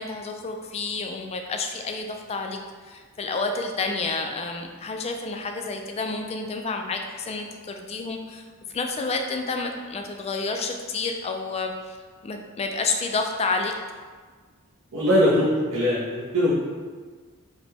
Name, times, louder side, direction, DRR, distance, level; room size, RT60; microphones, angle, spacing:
voice 1, 0.0-2.6 2.9-8.4 8.7-12.0 12.2-13.7, left 3 dB, 30° left, 4 dB, 0.3 m, -29 dB
voice 2, 14.9-16.5, equal, 60° right, -9 dB, 0.7 m, -21 dB
4.9 x 2.1 x 3.4 m, 1.5 s
head